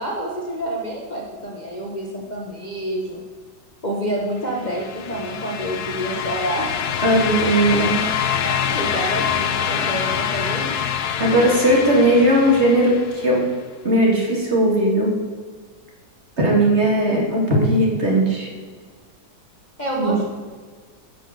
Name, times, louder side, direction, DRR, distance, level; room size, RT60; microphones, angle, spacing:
voice 1, 0.0-3.2 3.8-6.7 7.1-7.2 8.4-10.8 19.8-20.3, right 1 dB, 30° left, -3 dB, 1.2 m, -28 dB
sound 1, 4.5-13.4, left 8 dB, 65° left, 1.1 m, -25 dB
voice 2, 7.0-8.0 11.2-13.4 13.8-15.1 16.4-18.5 19.9-20.1, right 1 dB, 40° right, -2 dB, 2.4 m, -18 dB
10.5 x 6.4 x 6.6 m, 1.5 s
omnidirectional pair, 1.9 m